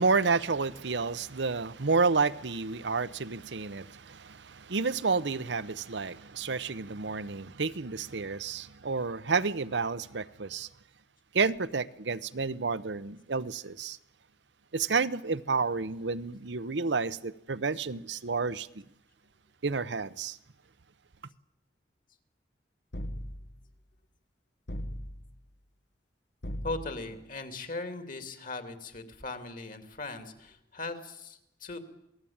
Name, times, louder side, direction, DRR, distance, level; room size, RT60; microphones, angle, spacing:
voice 1, 0.0-10.7 11.3-14.0 14.7-18.8 19.6-20.4, right 4 dB, 70° right, 0.8 m, -30 dB
sound 1, 22.9-23.7 24.7-25.4 26.4-27.2, equal, 65° left, 1.4 m, -38 dB
voice 2, 26.6-31.8, left 3 dB, 50° left, 2.9 m, -39 dB
27.0 x 19.0 x 8.8 m
head